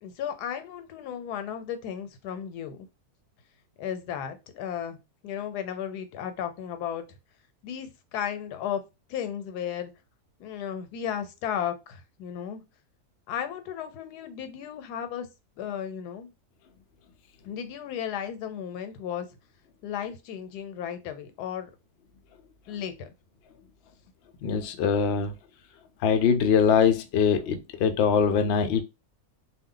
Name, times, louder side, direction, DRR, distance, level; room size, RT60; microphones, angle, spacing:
voice 1, 0.0-2.9 3.8-7.0 7.6-8.8 9.1-9.9 10.4-12.6 13.3-15.3 15.6-16.3 17.4-19.3 19.8-21.7 22.7-23.1, left 9 dB, 85° left, 1.1 m, -34 dB
voice 2, 24.4-25.3 26.0-28.8, left 6 dB, 70° left, 0.6 m, -22 dB
2.4 x 2.3 x 3.7 m
omnidirectional pair, 1.6 m